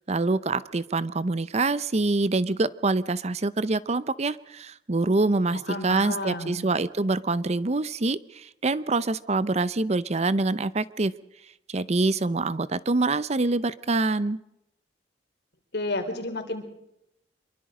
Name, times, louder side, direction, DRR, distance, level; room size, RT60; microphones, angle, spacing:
voice 1, 0.1-11.1 11.7-14.4, right 3 dB, 40° right, 17 dB, 0.7 m, -25 dB
voice 2, 5.7-6.7 15.7-16.7, left 2 dB, 65° left, 5 dB, 4.1 m, -31 dB
25.5 x 23.5 x 5.0 m, 0.82 s
head